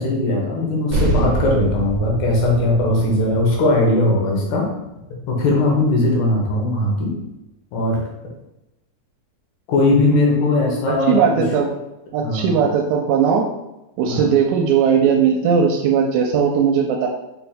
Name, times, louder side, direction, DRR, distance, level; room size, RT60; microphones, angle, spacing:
voice 1, 0.0-4.7 5.1-7.2 7.7-8.0 9.7-11.4 12.2-12.6 14.1-14.3, left 2 dB, 80° left, -1 dB, 2.5 m, -19 dB
sound 1, 0.9-5.7, right 2 dB, 60° right, 1.1 m, -26 dB
voice 2, 10.9-11.7 12.1-13.5 14.0-17.1, right 7 dB, 85° right, 0 dB, 1.9 m, -18 dB
5.6 x 2.2 x 4.1 m, 0.94 s
omnidirectional pair, 3.4 m